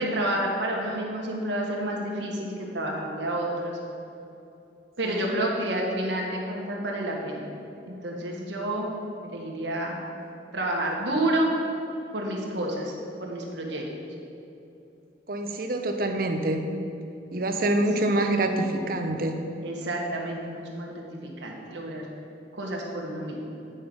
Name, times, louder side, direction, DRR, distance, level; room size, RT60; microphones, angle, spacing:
voice 1, 0.0-3.8 5.0-7.5 7.9-8.9 9.2-10.0 10.5-11.6 12.1-12.9 13.2-13.8 19.6-22.0 22.5-23.5, right 1 dB, 75° right, -1 dB, 1.4 m, -29 dB
voice 2, 5.0-5.4 15.3-16.6 17.3-19.3, right 1 dB, 50° right, 5 dB, 0.7 m, -26 dB
9.0 x 5.5 x 5.2 m, 2.8 s
head